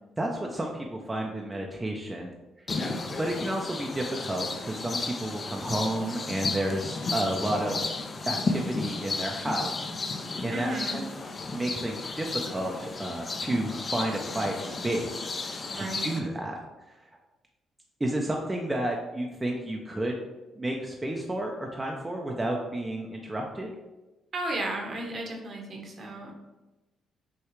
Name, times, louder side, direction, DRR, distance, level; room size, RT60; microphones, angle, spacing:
voice 1, 0.2-2.3 3.2-7.8 8.3-9.8 10.4-11.1 11.5-16.6 16.9-17.0 18.0-20.2 20.6-23.7, right 1 dB, 15° right, 0 dB, 0.5 m, -31 dB
sound 1, 2.7-16.2, left 3 dB, 40° left, 0.5 m, -33 dB
voice 2, 10.5-11.0 15.7-16.1 24.3-26.3, right 2 dB, 50° right, 1 dB, 1.0 m, -34 dB
6.3 x 2.4 x 3.1 m, 1.1 s
cardioid pair, 90°, 0 cm